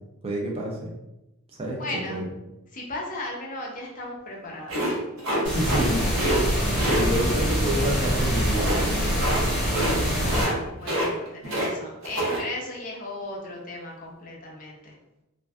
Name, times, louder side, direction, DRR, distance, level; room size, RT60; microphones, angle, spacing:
voice 1, 0.2-1.0 1.5-1.8 2.1-2.2 5.4-6.2 6.8-9.5, right 1 dB, 25° right, -2 dB, 0.3 m, -29 dB
voice 2, 1.8-2.2 2.7-4.8 10.2-14.9, left 2 dB, 35° left, -2 dB, 0.5 m, -36 dB
sound 1, 4.7-5.9 6.1-6.4 6.8-7.0 8.5-8.9 9.2-9.4 9.7-10.0 10.2-10.6 10.8-11.7 12.0-12.4, right 1 dB, 60° right, 0.7 m, -26 dB
sound 2, 5.4-10.4, equal, 5° right, 1.1 m, -24 dB
2.5 x 2.2 x 2.3 m, 0.95 s
head